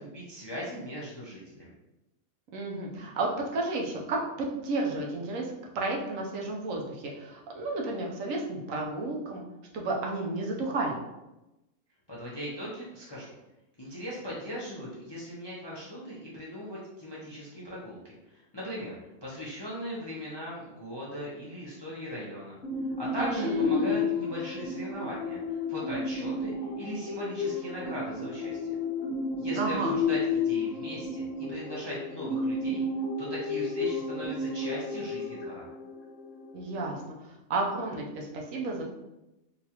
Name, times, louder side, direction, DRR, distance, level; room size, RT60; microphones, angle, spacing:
voice 1, 0.0-1.7 12.1-13.3 13.8-22.6 23.0-28.6 29.4-32.8 33.2-35.7, equal, 30° left, -6 dB, 0.4 m, -39 dB
voice 2, 2.5-9.4 9.7-11.0 23.2-24.0 29.5-29.9 36.5-37.0 37.5-38.8, right 2 dB, 70° right, -1 dB, 1.0 m, -32 dB
sound 1, 22.6-37.0, left 3 dB, 55° left, 0.9 m, -32 dB
3.9 x 2.4 x 2.8 m, 0.94 s
omnidirectional pair, 1.5 m